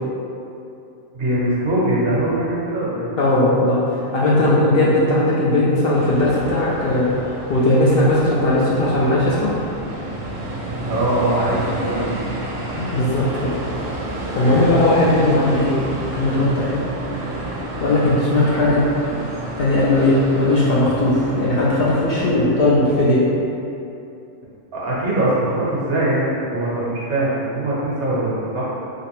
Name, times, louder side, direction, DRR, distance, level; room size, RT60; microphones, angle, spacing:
voice 1, 1.1-3.3 10.8-12.1 14.4-14.6 24.7-28.7, right 1 dB, 60° right, -7 dB, 1.1 m, -22 dB
voice 2, 3.2-3.8 4.1-7.1 7.5-9.5 12.7-13.5 14.3-15.8 16.1-16.8 17.8-18.8 19.6-23.3, left 1 dB, 65° left, -7 dB, 0.6 m, -17 dB
sound 1, 5.9-23.0, right 1 dB, 80° right, 1.0 m, -30 dB
3.3 x 2.9 x 3.0 m, 2.7 s
omnidirectional pair, 1.3 m